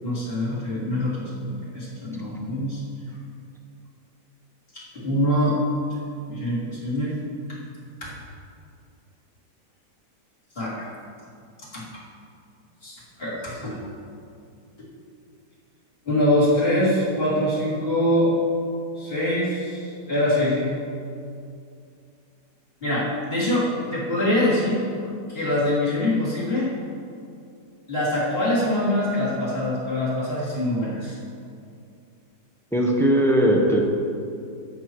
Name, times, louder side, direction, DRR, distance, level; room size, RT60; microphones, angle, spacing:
voice 1, 0.0-2.8 4.7-5.6 6.3-7.2 8.0-8.1 10.5-10.9 11.7-11.8 12.8-13.8 16.0-18.4 19.0-20.7 22.8-24.8 25.3-26.7 27.9-31.2, left 1 dB, 35° left, -8 dB, 3.1 m, -24 dB
voice 2, 32.7-33.8, equal, ahead, -1 dB, 0.9 m, -19 dB
16.5 x 8.2 x 3.1 m, 2.4 s
omnidirectional pair, 1.9 m